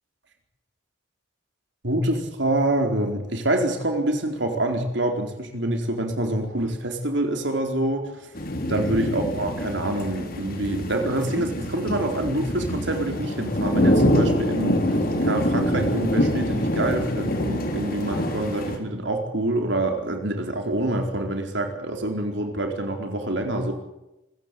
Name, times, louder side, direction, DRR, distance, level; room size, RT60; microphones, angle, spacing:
voice 1, 1.8-8.3 8.7-15.0 15.2-23.7, right 1 dB, 65° right, 4 dB, 4.5 m, -26 dB
sound 1, 8.4-18.8, equal, 50° left, 3.8 m, -25 dB
25.5 x 15.0 x 9.2 m, 0.94 s
head